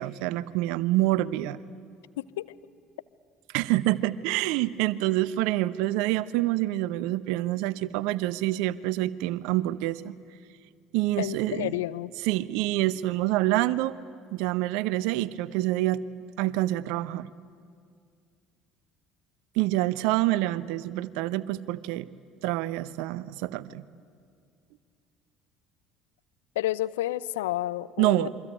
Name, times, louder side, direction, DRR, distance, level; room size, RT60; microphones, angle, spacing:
voice 1, 0.0-1.6 3.5-10.1 10.9-11.7 12.2-13.9 14.3-16.0 16.4-17.3 19.6-22.1 22.4-23.8 28.0-28.3, right 16 dB, 70° right, 17 dB, 0.8 m, -27 dB
voice 2, 2.2-2.5 11.2-12.1 26.6-28.3, left 15 dB, 75° left, 16 dB, 0.6 m, -30 dB
27.5 x 24.0 x 9.1 m, 2.2 s
hypercardioid pair, 60°, 0 cm